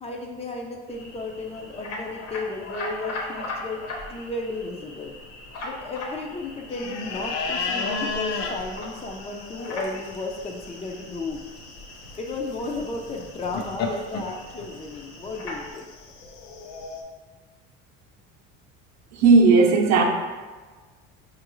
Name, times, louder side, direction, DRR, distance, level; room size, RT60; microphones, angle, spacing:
voice 1, 0.0-3.8 4.1-5.1 5.6-11.4 12.2-15.9, left 3 dB, 20° left, 1 dB, 0.4 m, -34 dB
sound 1, 0.9-15.7, left 2 dB, 55° left, 0.8 m, -39 dB
sound 2, 6.7-17.0, left 4 dB, 85° left, 0.6 m, -34 dB
voice 2, 19.2-20.0, right 4 dB, 60° right, 2 dB, 0.6 m, -15 dB
4.6 x 2.5 x 3.0 m, 1.4 s
cardioid pair, 115°, 30 cm